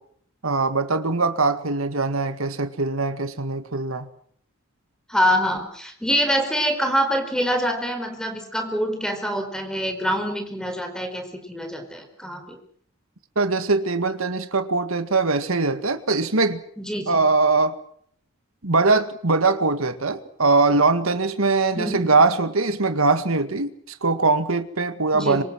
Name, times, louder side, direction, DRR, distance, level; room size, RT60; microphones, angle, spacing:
voice 1, 0.4-4.1 13.4-16.6 17.1-17.7 18.6-25.4, right 3 dB, 75° right, 1.9 m, -21 dB
voice 2, 5.1-12.6 16.8-17.2 21.8-22.1 25.1-25.4, equal, 5° left, 4.8 m, -25 dB
26.0 x 26.0 x 6.4 m
head